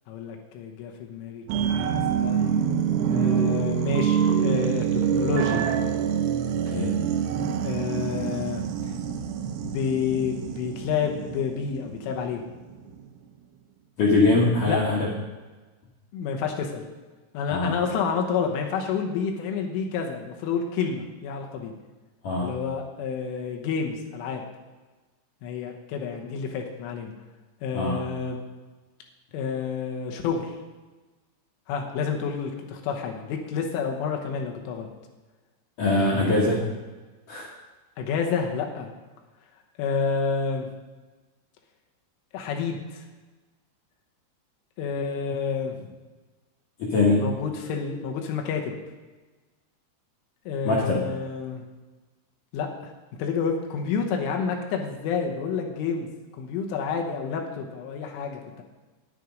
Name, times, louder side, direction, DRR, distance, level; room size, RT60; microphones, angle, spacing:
voice 1, 0.1-2.6 3.1-5.7 7.6-8.6 9.6-12.4 14.4-15.0 16.1-16.9 17.3-21.7 22.4-24.4 25.4-27.1 27.6-28.4 29.3-30.6 31.7-34.9 38.0-38.9 39.8-40.7 42.3-43.1 44.8-45.9 47.1-48.7 50.5-51.6 52.5-52.7 53.2-56.1 56.4-58.6, left 6 dB, 85° left, 2 dB, 3.6 m, -29 dB
sound 1, 1.5-12.5 12.9-13.0, right 8 dB, 75° right, 2.6 m, -26 dB
voice 2, 14.0-15.1 17.5-17.8 22.2-22.5 27.7-28.0 35.8-36.6 37.3-37.5 46.8-47.2 50.7-51.0, left 2 dB, 65° left, -3 dB, 2.2 m, -22 dB
10.0 x 9.5 x 5.2 m, 1.2 s
omnidirectional pair, 5.6 m